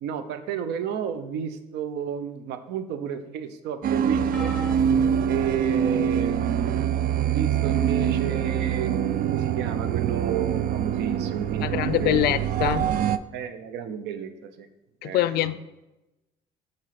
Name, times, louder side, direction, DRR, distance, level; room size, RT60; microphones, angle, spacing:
voice 1, 0.0-4.5 5.2-12.3 13.3-14.7 15.0-15.6, right 8 dB, 85° right, 10 dB, 0.8 m, -32 dB
sound 1, 3.8-13.2, right 9 dB, 55° right, 0.4 m, -25 dB
sound 2, 4.2-10.3, left 1 dB, 15° left, 1.3 m, -41 dB
sound 3, 4.3-6.1 6.9-7.1 8.4-8.5, left 2 dB, ahead, 1.1 m, -41 dB
voice 2, 11.6-12.9 15.0-15.5, left 14 dB, 70° left, 16 dB, 0.4 m, -24 dB
7.9 x 4.5 x 5.9 m, 1.0 s
cardioid pair, 110°, 17 cm